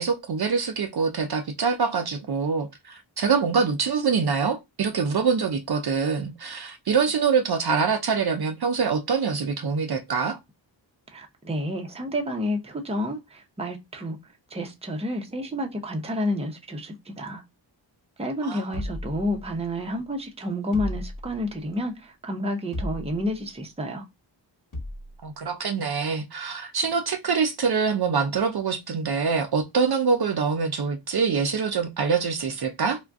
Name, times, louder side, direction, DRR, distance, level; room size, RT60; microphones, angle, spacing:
voice 1, 0.0-10.4 18.4-18.8 25.2-33.0, right 5 dB, 55° right, 0.6 m, -25 dB
voice 2, 11.1-14.2 14.5-17.4 18.2-24.0, left 1 dB, 15° right, 0.6 m, -30 dB
sound 1, 18.7-19.8 20.7-21.6 22.7-23.4 24.7-25.2, left 1 dB, 45° left, 1.2 m, -35 dB
2.4 x 2.2 x 3.4 m
cardioid pair, 55°, 47 cm